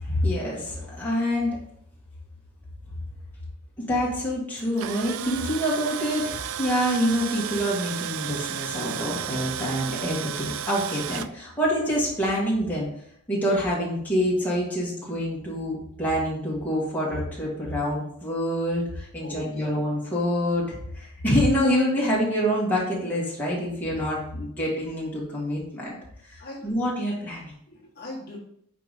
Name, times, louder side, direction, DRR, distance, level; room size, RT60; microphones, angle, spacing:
voice 1, 0.0-1.6 3.8-12.9 13.3-26.0 26.2-27.5, equal, 10° left, -6 dB, 2.0 m, -26 dB
Tools, 4.6-11.3, right 9 dB, 65° right, 0.3 m, -33 dB
voice 2, 19.2-19.7 26.4-26.7 27.7-28.4, left 1 dB, 45° left, -4 dB, 1.4 m, -39 dB
5.0 x 4.5 x 4.1 m, 0.69 s
head